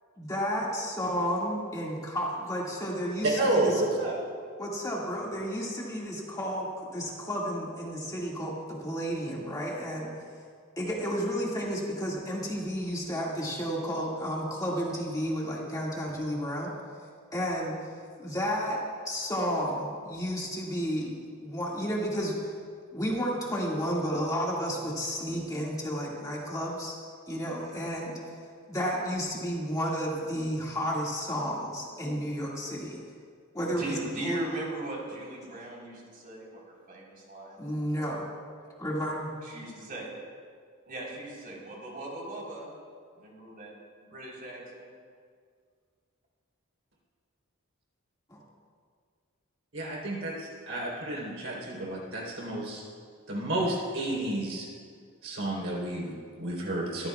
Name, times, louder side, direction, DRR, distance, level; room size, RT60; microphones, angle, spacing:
voice 1, 0.2-3.8 4.6-10.1 10.8-16.7 17.3-17.8 18.2-22.5 22.9-27.0 27.3-28.2 28.7-33.0 33.5-34.4 37.6-38.3 38.8-39.3 48.3-48.4, equal, 15° left, -4 dB, 2.0 m, -32 dB
voice 2, 3.4-4.1 49.7-52.8 53.3-54.7 55.2-57.1, right 1 dB, 65° right, -3 dB, 3.7 m, -30 dB
voice 3, 33.7-36.6 36.9-37.8 39.4-40.1 40.9-42.7 43.2-43.7 44.0-44.9, right 1 dB, 45° right, -3 dB, 4.0 m, -39 dB
23.0 x 14.0 x 2.4 m, 2.1 s
head